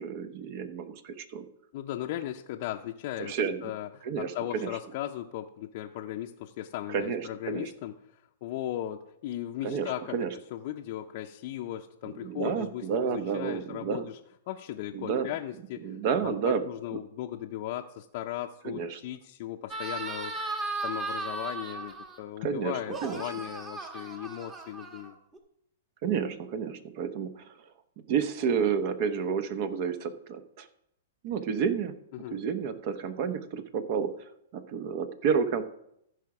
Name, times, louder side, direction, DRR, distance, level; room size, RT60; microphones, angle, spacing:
voice 1, 0.0-1.4 3.2-3.7 4.0-4.7 6.9-7.7 9.6-10.3 12.2-14.0 14.9-15.3 15.8-16.6 18.6-19.0 22.4-22.7 23.0-23.2 26.0-27.5 28.1-30.7 31.2-31.9 32.3-34.1 34.5-35.6, right 6 dB, 45° right, 11 dB, 0.9 m, -30 dB
voice 2, 1.7-3.3 3.6-14.2 14.5-16.0 16.2-20.3 20.8-25.2 32.1-32.4, left 12 dB, 50° left, 2 dB, 0.6 m, -37 dB
sound 1, 19.7-22.2 22.8-25.4, right 3 dB, 20° right, 1.3 m, -36 dB
14.5 x 4.9 x 4.8 m, 0.77 s
hypercardioid pair, 135°, 0 cm